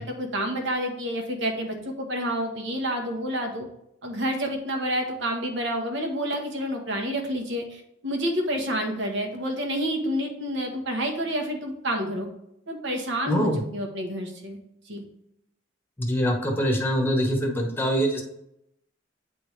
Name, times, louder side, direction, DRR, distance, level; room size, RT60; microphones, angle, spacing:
voice 1, 0.0-3.7 4.0-12.3 12.7-14.6 14.9-15.0, equal, 70° right, 3 dB, 1.2 m, -29 dB
voice 2, 13.3-13.6 16.0-18.3, equal, 10° left, 2 dB, 1.0 m, -24 dB
8.8 x 3.5 x 3.2 m, 0.79 s
head